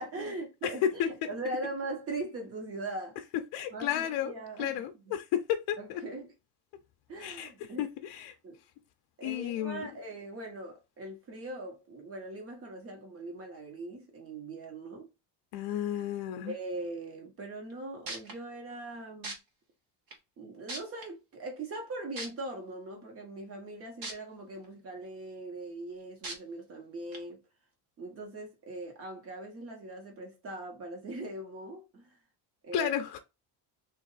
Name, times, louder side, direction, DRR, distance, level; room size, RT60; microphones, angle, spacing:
voice 1, 0.0-3.2 3.7-5.1 5.8-6.3 7.1-7.8 8.4-8.6 9.2-15.1 16.4-19.4 20.4-27.4 28.0-32.1 32.6-32.9, right 2 dB, 30° right, 1.2 m, -41 dB
voice 2, 3.5-4.3 4.6-6.0 7.2-7.5 7.8-8.3 9.2-9.9 15.5-16.5 32.7-33.2, left 10 dB, 60° left, 0.6 m, -32 dB
sound 1, 17.7-17.8 18.1-18.3 19.2-19.3 20.1-20.2 20.7-21.0 22.2-22.3 24.0-24.1 24.6-24.7 26.2-26.3 27.1-27.2, right 2 dB, 55° right, 1.1 m, -37 dB
3.2 x 2.6 x 4.0 m
cardioid pair, 175°, 43 cm